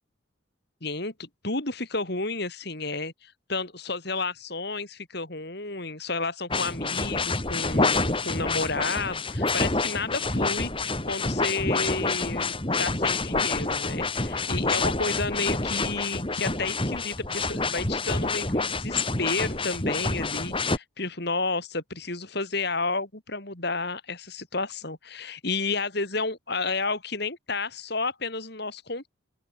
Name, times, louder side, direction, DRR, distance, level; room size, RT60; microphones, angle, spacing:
voice 1, 0.8-29.1, left 3 dB, 55° left, 3.5 m, -31 dB
sound 1, 6.5-20.8, left 3 dB, 25° left, 2.5 m, -27 dB
open air
head